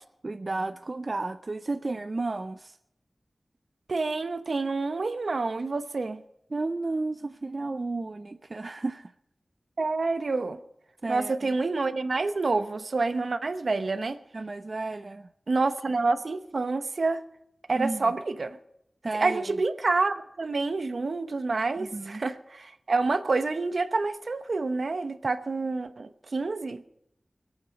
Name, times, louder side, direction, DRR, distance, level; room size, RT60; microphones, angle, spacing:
voice 1, 0.2-2.8 6.5-9.1 11.0-11.5 14.3-15.3 17.8-18.1 19.0-19.4 21.8-22.2, right 3 dB, 45° right, 10 dB, 0.4 m, -32 dB
voice 2, 3.9-6.2 9.8-10.6 11.1-14.2 15.5-17.2 17.7-18.6 19.2-26.8, right 3 dB, 70° right, 10 dB, 0.9 m, -28 dB
25.5 x 8.7 x 5.2 m, 0.80 s
wide cardioid pair, 75°, 0 cm